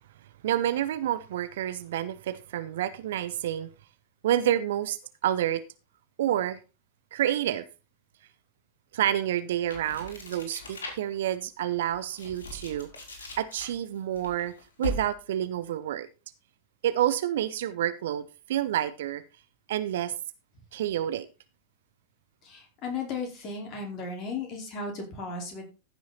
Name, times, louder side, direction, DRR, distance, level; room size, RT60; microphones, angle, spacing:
voice 1, 0.4-3.7 4.2-5.6 6.2-6.6 7.1-7.6 8.9-12.9 13.4-14.5 14.8-16.1 16.8-19.2 19.7-20.1 20.7-21.3, right 11 dB, 60° right, 0.9 m, -28 dB
sound 1, 9.6-11.3 11.8-15.3, left 2 dB, 65° left, 3.9 m, -39 dB
voice 2, 22.4-25.7, left 4 dB, 35° left, 4.7 m, -35 dB
15.0 x 6.3 x 4.2 m
figure-of-eight pair, 90°, 0 cm